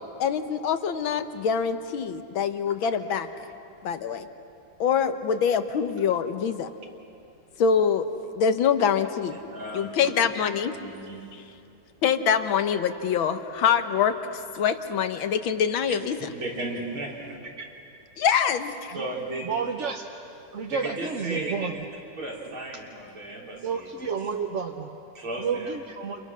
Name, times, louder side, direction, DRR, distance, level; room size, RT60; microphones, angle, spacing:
voice 1, 0.2-3.3 3.8-4.3 4.8-6.7 7.6-8.1 8.3-9.4 9.7-10.7 11.3-11.4 12.0-16.3 18.2-18.9, left 7 dB, 75° left, 9 dB, 1.9 m, -25 dB
voice 2, 9.3-10.0 10.7-11.4 15.9-16.0 16.3-17.4 18.9-19.5 20.7-21.5 22.2-23.9 25.1-25.8, right 2 dB, 85° right, -4 dB, 5.6 m, -35 dB
voice 3, 19.4-20.0 20.5-21.7 23.6-25.0 25.4-26.3, right 6 dB, 45° right, 2 dB, 1.1 m, -31 dB
29.5 x 29.0 x 6.3 m, 2.7 s
omnidirectional pair, 2.2 m